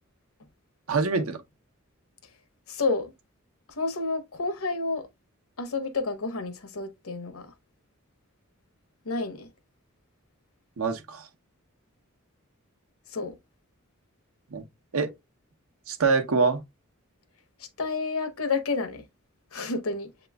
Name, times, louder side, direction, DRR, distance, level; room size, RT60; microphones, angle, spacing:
voice 1, 0.9-1.4 10.8-11.3 14.5-14.6 14.9-15.1 15.9-16.6, right 4 dB, 80° right, 0.9 m, -24 dB
voice 2, 2.7-3.1 3.8-5.1 5.6-7.5 9.0-9.5 13.1-13.3 17.6-19.0 19.5-20.1, left 3 dB, 80° left, 0.9 m, -30 dB
7.7 x 3.0 x 2.3 m
head